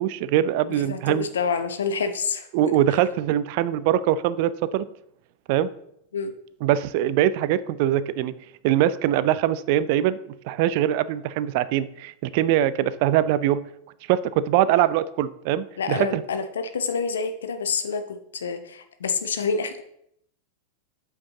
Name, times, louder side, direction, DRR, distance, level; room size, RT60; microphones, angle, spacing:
voice 1, 0.0-1.3 2.5-4.9 5.5-5.7 6.6-8.3 8.6-10.2 10.4-13.6 14.1-16.2, right 12 dB, 45° right, 16 dB, 0.4 m, -22 dB
voice 2, 0.7-2.5 6.1-6.4 15.8-19.8, left 5 dB, 65° left, 8 dB, 0.7 m, -27 dB
8.4 x 4.7 x 3.7 m, 0.73 s
figure-of-eight pair, 90°, 0 cm